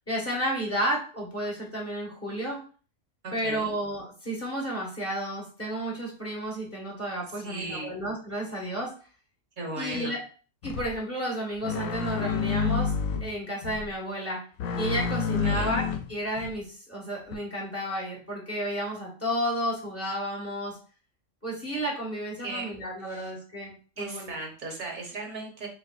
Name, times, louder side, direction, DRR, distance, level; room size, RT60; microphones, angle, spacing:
voice 1, 0.1-2.6 3.3-8.9 9.8-10.2 10.6-12.9 13.2-14.4 14.8-20.8 21.4-24.3, equal, 10° left, -4 dB, 1.5 m, -32 dB
voice 2, 3.2-3.7 7.3-8.0 9.6-10.2 15.4-15.7 22.4-22.6 23.0-23.3 24.0-25.7, right 2 dB, 40° right, 0 dB, 1.2 m, -37 dB
sound 1, 10.6-10.9 11.6-13.3 13.6-13.9 14.6-16.5 17.3-17.4, left 5 dB, 85° left, 1.0 m, -29 dB
6.6 x 2.5 x 2.5 m, 0.39 s
omnidirectional pair, 1.4 m